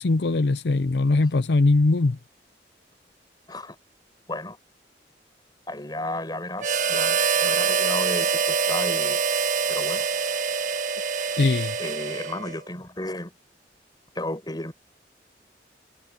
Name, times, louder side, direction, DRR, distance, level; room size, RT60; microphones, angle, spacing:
voice 1, 0.0-2.2 11.4-11.8, left 3 dB, 70° left, 0.6 m, -21 dB
voice 2, 5.7-9.2 9.7-10.0 11.8-13.3 14.1-14.7, left 1 dB, 25° left, 5.0 m, -33 dB
Harmonica, 6.6-12.6, right 5 dB, 45° right, 1.5 m, -25 dB
head